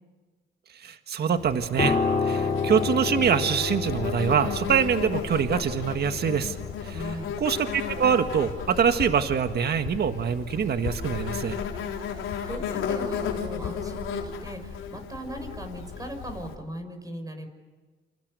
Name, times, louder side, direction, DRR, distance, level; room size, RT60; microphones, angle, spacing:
voice 1, 0.8-2.0 2.2-6.5 6.8-6.9 7.4-11.6, right 7 dB, 55° right, 8 dB, 1.7 m, -24 dB
Insect, 1.4-16.5, left 7 dB, 85° left, 4.1 m, -34 dB
Piano, 1.8-11.2 11.4-11.7, left 4 dB, 30° left, 4.5 m, -31 dB
voice 2, 6.9-7.3 12.1-17.5, right 1 dB, 20° right, 6 dB, 6.2 m, -38 dB
29.0 x 28.5 x 6.8 m, 1.3 s
cardioid pair, 90°, 20 cm